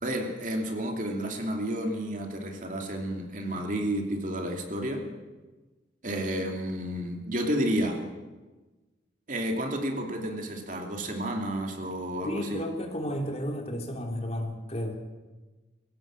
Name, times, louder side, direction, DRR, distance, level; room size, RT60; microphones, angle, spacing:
voice 1, 0.0-5.1 6.0-8.0 9.3-12.6, right 1 dB, 45° right, 2 dB, 2.8 m, -31 dB
voice 2, 12.2-15.0, equal, 35° left, 2 dB, 2.9 m, -32 dB
23.0 x 16.5 x 7.6 m, 1.2 s
head